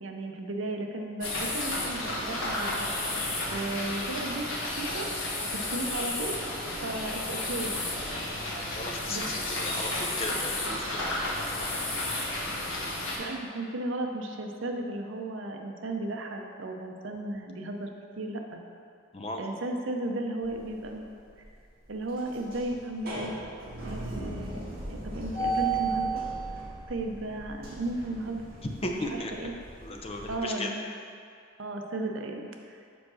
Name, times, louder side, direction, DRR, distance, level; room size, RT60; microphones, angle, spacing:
voice 1, 0.0-2.9 3.5-5.1 5.5-6.4 6.8-8.0 9.1-9.2 13.2-17.9 18.2-18.6 19.4-21.1 21.9-23.4 23.8-24.6 24.9-26.2 26.9-28.4 28.8-29.5 30.3-30.8 31.6-33.0, right 2 dB, 65° right, 3 dB, 0.7 m, -35 dB
sound 1, 1.2-13.2, left 1 dB, 70° left, 1.3 m, -32 dB
voice 2, 8.8-11.1 19.1-19.4 28.6-29.3 29.8-30.7, left 1 dB, 30° left, 2 dB, 0.6 m, -36 dB
sound 2, 20.4-21.0 21.4-21.5 21.9-30.4, right 3 dB, 50° right, 1.7 m, -35 dB
5.1 x 4.7 x 6.2 m, 2.3 s
head